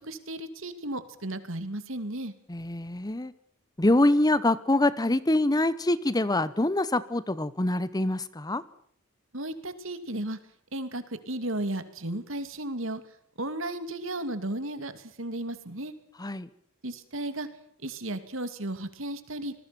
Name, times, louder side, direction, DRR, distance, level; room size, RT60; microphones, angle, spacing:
voice 1, 0.0-2.3 9.3-10.4 10.7-13.0 13.4-15.9 16.8-17.5 17.8-19.5, right 1 dB, 70° right, 10 dB, 2.7 m, -34 dB
voice 2, 2.5-3.3 3.8-8.6 16.2-16.5, left 1 dB, 20° left, 16 dB, 0.9 m, -25 dB
27.0 x 20.5 x 6.1 m, 0.63 s
head